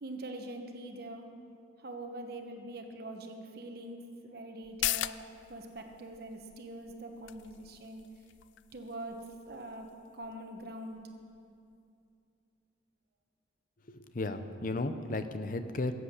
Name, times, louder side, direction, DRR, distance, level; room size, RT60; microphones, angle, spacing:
voice 1, 0.0-1.3 1.8-8.0 8.7-11.0, right 1 dB, 55° right, 4 dB, 1.1 m, -43 dB
sound 1, 4.6-11.8 12.1-12.2, left 15 dB, 75° left, 0.3 m, -41 dB
voice 2, 13.9-15.9, left 2 dB, 45° left, 9 dB, 0.7 m, -34 dB
15.0 x 8.1 x 6.6 m, 2.5 s
head